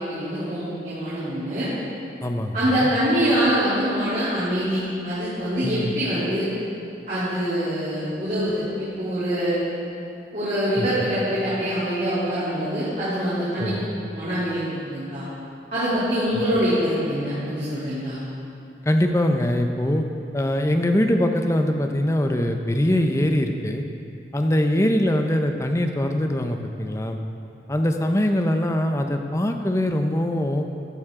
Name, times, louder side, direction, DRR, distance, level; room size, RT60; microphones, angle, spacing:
voice 1, 0.0-1.7 2.5-6.5 7.1-9.6 10.3-13.7 14.1-15.2 15.7-18.2, equal, 45° right, -13 dB, 3.1 m, -24 dB
voice 2, 2.2-2.9 5.6-5.9 10.8-11.1 13.6-13.9 18.8-20.0 20.3-23.8 24.3-27.2 27.7-30.7, left 1 dB, 15° left, 5 dB, 0.6 m, -22 dB
14.0 x 9.5 x 3.7 m, 2.6 s
head